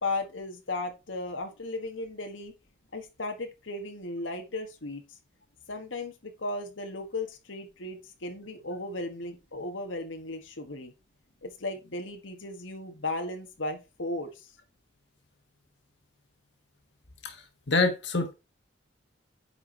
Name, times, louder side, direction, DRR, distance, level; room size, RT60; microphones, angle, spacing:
voice 1, 0.0-2.5 2.9-5.0 5.7-10.9 11.4-14.5, left 2 dB, 90° left, 4 dB, 1.6 m, -36 dB
voice 2, 17.2-18.3, left 3 dB, 70° left, 4 dB, 1.7 m, -27 dB
9.7 x 4.6 x 4.5 m, 0.27 s
head